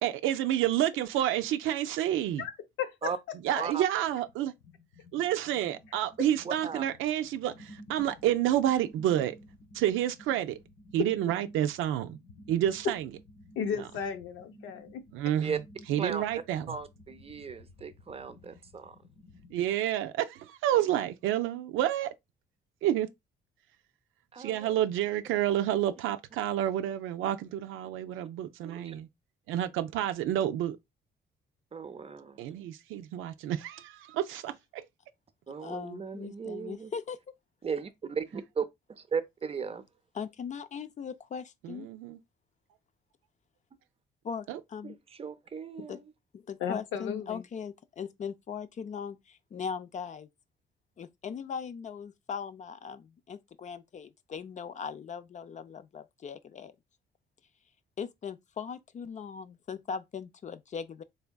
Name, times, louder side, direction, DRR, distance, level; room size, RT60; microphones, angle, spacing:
voice 1, 0.0-2.4 3.4-4.5 5.1-9.4 9.7-10.6 10.9-12.2 12.5-13.1 13.8-13.9 15.1-15.6 15.9-16.8 19.5-22.1 22.8-23.1 24.4-29.1 29.5-30.8 32.4-34.9 41.6-42.2 44.5-44.6, right 12 dB, 90° right, 0.4 m, -29 dB
sound 1, 3.9-19.8, left 1 dB, 65° left, 1.0 m, -54 dB
voice 2, 6.4-6.8 15.4-15.6 16.0-16.2 16.7-19.0 24.3-24.8 28.6-29.0 31.7-32.4 35.5-36.9 37.6-39.9 44.8-46.1, right 6 dB, 30° right, 0.5 m, -36 dB
voice 3, 13.6-15.0 46.6-47.4, left 7 dB, 85° left, 0.6 m, -34 dB
voice 4, 35.6-37.2 40.1-41.9 44.2-45.0 45.9-46.0 46.3-50.3 51.0-56.7 58.0-61.0, left 6 dB, 40° left, 0.4 m, -39 dB
3.5 x 3.3 x 2.2 m
cardioid pair, 90°, 20 cm